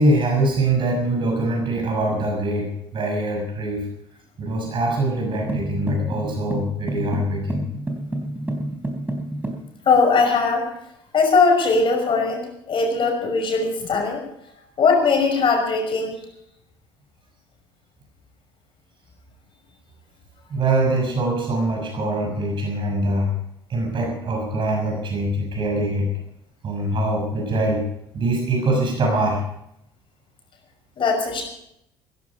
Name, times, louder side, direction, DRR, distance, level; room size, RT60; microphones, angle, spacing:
voice 1, 0.0-3.9 4.4-7.6 20.5-23.3 23.7-26.1 26.6-27.8 28.1-29.4, right 2 dB, 40° right, 0 dB, 6.4 m, -23 dB
sound 1, 5.5-9.7, right 1 dB, 15° right, 3.9 m, -29 dB
voice 2, 9.9-10.7 11.1-12.4 12.7-14.2 14.8-16.2 31.0-31.4, left 4 dB, 40° left, 3 dB, 5.9 m, -19 dB
16.5 x 15.0 x 5.1 m, 0.76 s
figure-of-eight pair, 55°, 13 cm